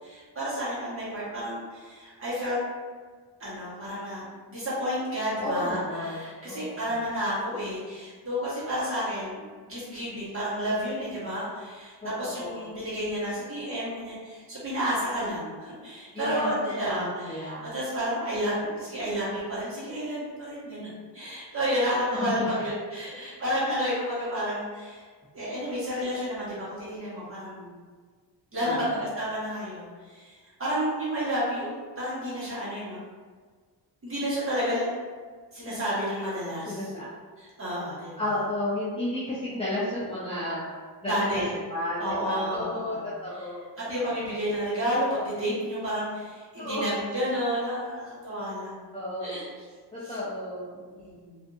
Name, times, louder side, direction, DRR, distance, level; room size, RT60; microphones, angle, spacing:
voice 1, 0.0-2.6 3.4-5.8 6.1-20.9 21.1-25.0 25.3-27.7 28.5-31.7 32.0-33.0 34.0-35.0 35.5-36.8 37.6-38.2 41.1-41.5 42.0-43.0 43.8-48.9 49.2-49.5 50.0-50.1 50.9-51.4, equal, 30° right, -9 dB, 1.2 m, -31 dB
voice 2, 5.4-7.0 12.0-12.6 16.1-17.7 21.8-22.6 28.6-29.0 36.7-37.1 38.2-40.7 41.0-41.4 41.7-44.4 46.6-46.9 48.9-49.5 49.9-50.8, left 1 dB, 15° left, -10 dB, 0.4 m, -33 dB
2.6 x 2.5 x 2.5 m, 1.5 s
wide cardioid pair, 145°, 42 cm